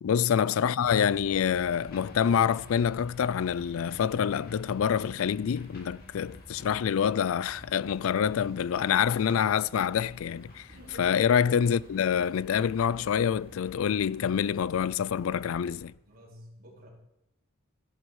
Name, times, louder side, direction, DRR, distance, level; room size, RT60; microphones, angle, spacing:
voice 1, 0.0-15.9, left 8 dB, 70° left, 0.3 m, -26 dB
sound 1, 0.8-15.9, left 1 dB, 50° left, 2.8 m, -50 dB
sound 2, 6.6-7.6 8.0-13.1, right 2 dB, 65° right, 1.9 m, -52 dB
voice 2, 11.6-11.9 16.1-16.9, equal, 45° right, 3.6 m, -53 dB
14.0 x 11.0 x 4.7 m
head